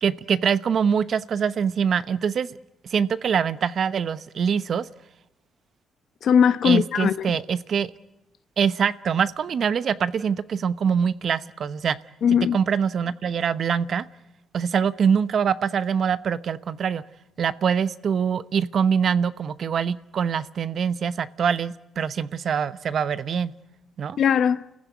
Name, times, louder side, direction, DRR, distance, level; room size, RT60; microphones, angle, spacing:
voice 1, 0.0-2.5 2.9-4.9 6.6-7.9 8.6-12.0 12.5-14.0 14.5-17.0 17.4-23.5 24.0-24.2, right 7 dB, 55° right, 0.9 m, -24 dB
voice 2, 6.2-7.4 12.2-12.6 24.2-24.6, left 8 dB, 65° left, 0.9 m, -20 dB
29.0 x 15.5 x 9.5 m
cardioid pair, 90°, 0 cm